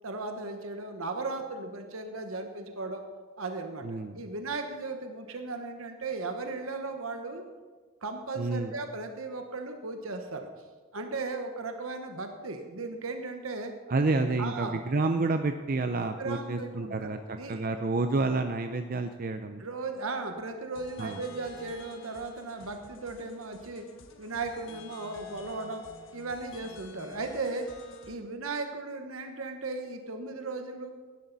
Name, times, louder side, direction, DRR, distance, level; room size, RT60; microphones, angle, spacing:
voice 1, 0.0-3.0 3.4-7.4 8.0-10.5 10.9-13.7 14.4-14.8 16.2-17.6 19.6-23.8 24.2-25.8 26.1-27.7 28.1-30.9, right 3 dB, 75° right, 5 dB, 1.2 m, -36 dB
voice 2, 3.8-4.2 8.4-8.7 13.9-19.6 21.0-21.2, right 3 dB, 40° right, 7 dB, 0.5 m, -29 dB
sound 1, 20.8-28.1, left 2 dB, 60° left, 1.2 m, -50 dB
16.5 x 11.5 x 4.1 m, 1.5 s
head